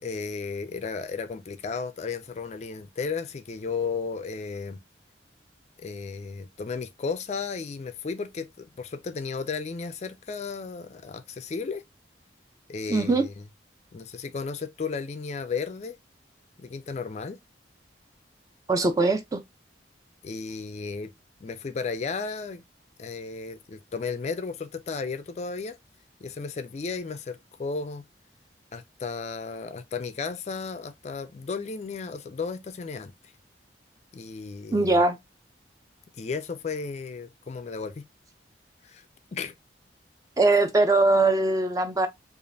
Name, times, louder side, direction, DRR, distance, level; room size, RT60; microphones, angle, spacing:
voice 1, 0.0-4.8 5.8-11.8 12.7-13.5 13.9-16.0 16.6-17.4 20.2-21.1 21.4-22.6 23.0-25.8 26.2-28.0 28.7-33.1 34.1-35.0 36.2-38.0 38.8-39.1 39.3-39.5, left 4 dB, 35° left, 0.3 m, -34 dB
voice 2, 12.9-13.2 18.7-19.4 34.7-35.2 40.4-42.1, right 2 dB, 20° right, 0.5 m, -21 dB
4.9 x 2.4 x 2.6 m
head